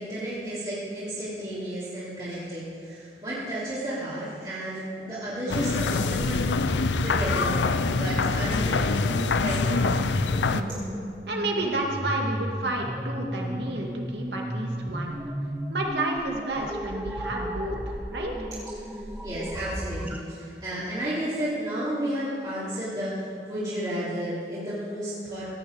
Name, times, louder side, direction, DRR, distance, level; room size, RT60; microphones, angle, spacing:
voice 1, 0.0-6.5 7.0-9.7 18.8-25.5, right 1 dB, 25° right, -12 dB, 3.3 m, -32 dB
sound 1, 5.5-10.6, left 4 dB, 85° left, 0.6 m, -25 dB
sound 2, 6.5-20.2, equal, 10° right, 0.8 m, -34 dB
voice 2, 10.5-10.8 11.3-15.2 15.7-18.5, right 2 dB, 70° right, 0 dB, 2.2 m, -31 dB
16.5 x 6.9 x 8.1 m, 2.4 s
head